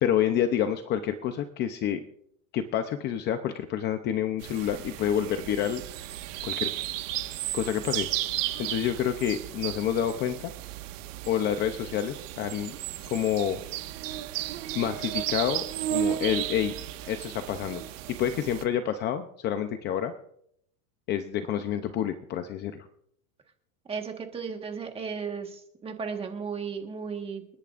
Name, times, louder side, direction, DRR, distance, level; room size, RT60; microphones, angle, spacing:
voice 1, 0.0-2.0 2.5-5.8 6.4-6.7 7.5-8.1 8.6-10.5 11.3-12.7 13.1-13.6 14.7-15.6 15.9-16.8 17.1-17.8 18.2-20.1 21.1-22.9, left 9 dB, 25° left, 8 dB, 0.7 m, -28 dB
sound 1, 4.4-18.6, right 13 dB, 65° right, 1.6 m, -34 dB
voice 2, 23.8-27.5, right 5 dB, 15° right, 4 dB, 1.5 m, -35 dB
29.5 x 10.5 x 2.5 m, 0.71 s
supercardioid pair, 160°, 41 cm